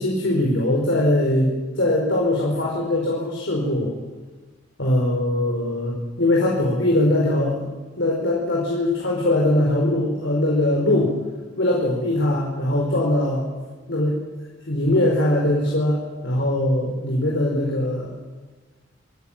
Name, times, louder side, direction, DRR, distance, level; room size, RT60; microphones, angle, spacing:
voice 1, 0.0-3.9 4.8-7.7 8.0-11.1 11.6-13.4 13.9-14.2 14.7-18.1, left 1 dB, 70° left, -2 dB, 4.9 m, -21 dB
26.5 x 14.5 x 7.4 m, 1.3 s
head